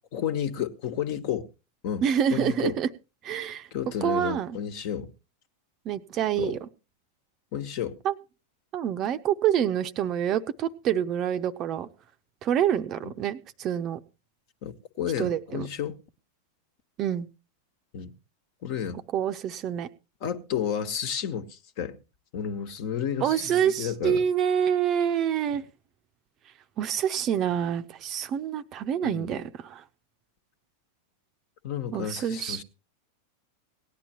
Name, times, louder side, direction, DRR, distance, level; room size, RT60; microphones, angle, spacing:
voice 1, 0.1-1.5 1.8-2.8 3.7-5.1 6.4-6.6 7.5-8.0 13.0-13.1 14.6-16.0 17.9-18.1 18.6-19.0 20.2-22.0 22.3-24.2 29.0-29.4 31.6-32.6, left 8 dB, 45° left, 1.3 m, -32 dB
voice 2, 2.0-2.9 3.2-3.7 4.0-4.6 5.8-6.6 8.0-8.1 8.7-11.9 12.4-14.0 15.2-15.7 17.0-17.3 19.1-19.9 23.2-25.6 26.8-29.8 31.9-32.6, right 9 dB, 35° right, 0.7 m, -27 dB
18.0 x 10.5 x 3.0 m
figure-of-eight pair, 90°, 0 cm